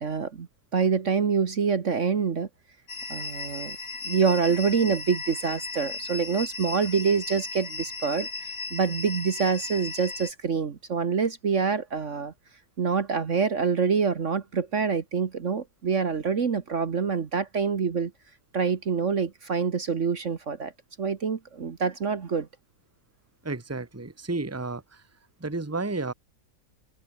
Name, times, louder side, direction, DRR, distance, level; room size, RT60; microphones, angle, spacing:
voice 1, 0.0-2.5 3.1-3.8 4.0-12.3 12.8-18.1 18.5-20.7 21.0-22.5, right 5 dB, 50° right, 1.6 m, -26 dB
sound 1, 2.9-10.3, left 3 dB, 65° left, 4.5 m, -36 dB
voice 2, 23.4-25.0 25.4-26.1, right 3 dB, 10° right, 1.5 m, -32 dB
omnidirectional pair, 1.7 m